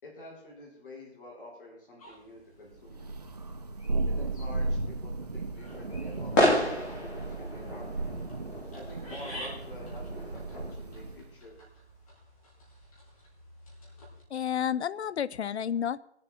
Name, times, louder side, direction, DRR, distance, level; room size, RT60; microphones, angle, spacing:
voice 1, 0.0-3.1 4.1-6.3 6.6-7.9 8.7-11.5, left 1 dB, 55° left, -3 dB, 4.7 m, -48 dB
sound 1, 2.0-14.2, equal, 35° left, 3.7 m, -51 dB
Thunder, 2.9-11.3, right 2 dB, 40° right, 0.4 m, -35 dB
sound 2, 5.6-10.7, left 1 dB, 15° left, 2.6 m, -31 dB
voice 2, 14.3-16.0, left 9 dB, 80° left, 18 dB, 0.6 m, -30 dB
20.5 x 7.4 x 4.2 m, 0.75 s
hypercardioid pair, 175°, 33 cm